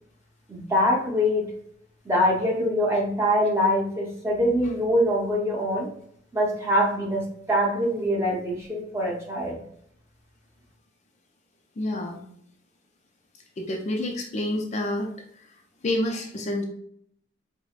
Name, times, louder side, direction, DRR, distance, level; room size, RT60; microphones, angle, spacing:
voice 1, 0.5-1.5 2.0-5.9 6.3-9.6, equal, 15° right, -3 dB, 0.8 m, -24 dB
voice 2, 11.8-12.2 13.6-15.1 15.8-16.6, left 1 dB, 35° left, 2 dB, 0.4 m, -28 dB
4.7 x 2.1 x 2.4 m, 0.66 s
head